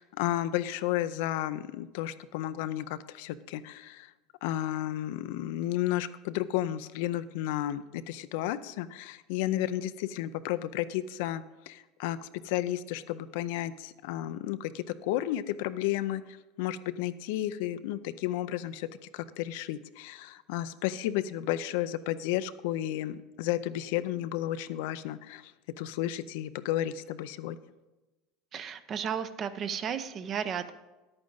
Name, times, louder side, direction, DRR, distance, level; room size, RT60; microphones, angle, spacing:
voice 1, 0.0-4.1 4.4-18.9 19.1-25.5 25.8-27.6, left 13 dB, 75° left, 13 dB, 0.5 m, -32 dB
voice 2, 28.5-30.7, right 7 dB, 35° right, 12 dB, 0.6 m, -34 dB
10.5 x 8.8 x 3.9 m, 1.1 s
supercardioid pair, 125°, 0 cm